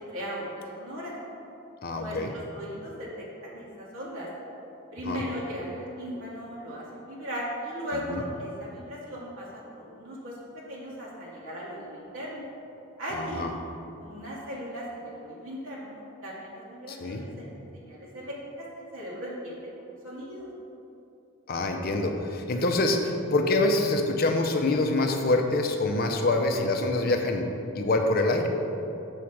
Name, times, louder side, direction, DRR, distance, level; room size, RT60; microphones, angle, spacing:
voice 1, 0.1-1.1 1.9-3.2 3.5-4.3 4.9-12.4 13.0-13.5 14.0-17.5 17.8-20.5, equal, 80° right, -5 dB, 1.2 m, -37 dB
voice 2, 1.8-2.3 5.1-5.2 8.1-8.2 13.1-13.5 16.9-17.2 21.5-27.5 27.7-28.5, left 2 dB, 50° left, 4 dB, 0.5 m, -25 dB
7.1 x 3.2 x 5.8 m, 2.8 s
head